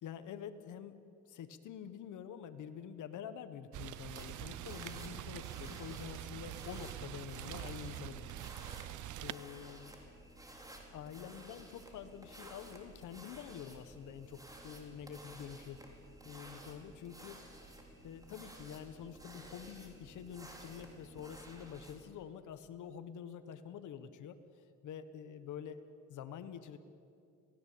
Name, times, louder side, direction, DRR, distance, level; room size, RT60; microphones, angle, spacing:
voice 1, 0.0-8.4 9.2-9.9 10.9-17.4 18.0-25.8 26.1-26.8, left 8 dB, 80° left, 10 dB, 1.5 m, -47 dB
Rain, 3.7-9.3, right 15 dB, 75° right, 0.6 m, -45 dB
sound 1, 4.1-22.1, right 1 dB, 10° right, 4.5 m, -54 dB
27.0 x 17.5 x 8.8 m, 2.4 s
cardioid pair, 90°, 30 cm